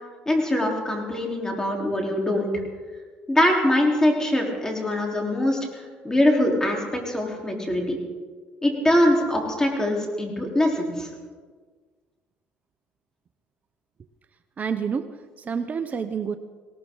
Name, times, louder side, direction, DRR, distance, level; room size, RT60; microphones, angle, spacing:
voice 1, 0.3-2.5 3.3-6.8 7.0-8.0 8.6-11.1, left 1 dB, 15° left, 0 dB, 4.0 m, -23 dB
voice 2, 14.6-16.4, right 6 dB, 40° right, 10 dB, 0.8 m, -29 dB
19.5 x 18.0 x 3.9 m, 1.5 s
supercardioid pair, 80°, 4 cm